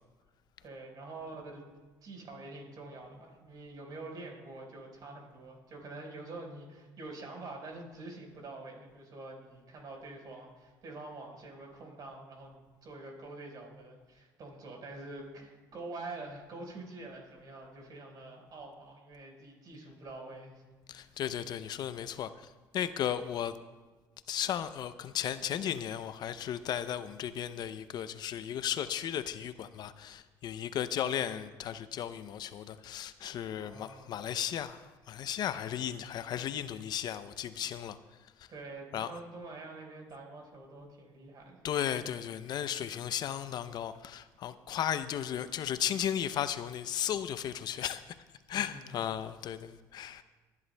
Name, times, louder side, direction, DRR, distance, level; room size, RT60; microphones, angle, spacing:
voice 1, 0.6-1.6 2.0-20.6 21.0-21.1 33.5-34.1 35.5-35.8 38.5-41.6 48.5-48.9, right 2 dB, 50° right, 4.4 m, -46 dB
voice 2, 20.9-22.3 22.7-23.6 24.3-34.8 35.1-38.0 38.9-39.1 41.6-48.0 48.5-50.2, left 10 dB, 60° left, 0.5 m, -35 dB
27.0 x 11.0 x 2.2 m
supercardioid pair, 80°, 8 cm